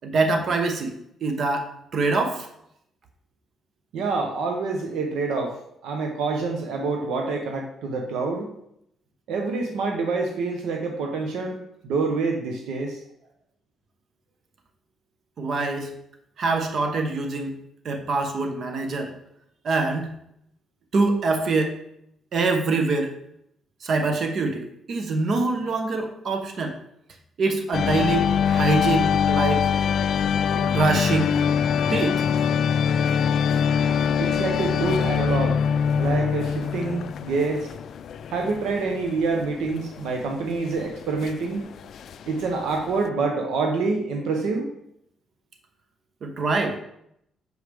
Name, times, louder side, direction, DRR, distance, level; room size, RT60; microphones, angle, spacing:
voice 1, 0.0-0.9 1.2-1.7 1.9-2.5 15.4-15.9 16.4-17.6 17.8-19.1 19.6-20.1 20.9-21.8 22.3-23.1 23.8-26.8 27.4-29.6 30.5-31.4 31.9-32.2 46.2-46.8, right 3 dB, 60° right, 5 dB, 0.9 m, -24 dB
voice 2, 3.9-5.6 5.8-8.5 9.3-13.0 34.2-35.6 36.0-37.7 38.3-41.7 42.3-44.7, right 3 dB, 85° right, 3 dB, 0.7 m, -26 dB
sound 1, 27.7-43.1, left 7 dB, 65° left, 0.3 m, -23 dB
6.4 x 4.9 x 3.4 m, 0.75 s
cardioid pair, 90°, 0 cm